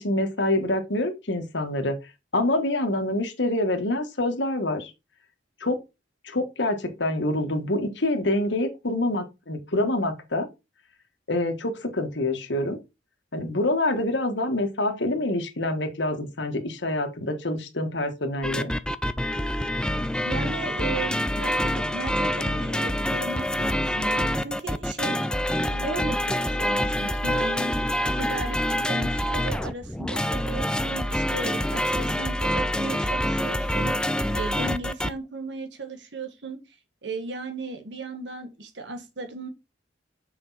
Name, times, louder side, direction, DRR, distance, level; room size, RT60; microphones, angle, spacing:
voice 1, 0.0-2.0 2.3-4.9 5.6-5.8 6.2-10.5 11.3-12.8 13.3-18.7, left 1 dB, 70° left, 1.6 m, -26 dB
sound 1, 18.4-35.1, left 1 dB, 5° left, 0.4 m, -26 dB
voice 2, 20.2-25.2 25.7-27.7 28.2-36.6 37.0-39.5, right 3 dB, 65° right, 1.7 m, -36 dB
6.2 x 5.5 x 4.1 m
head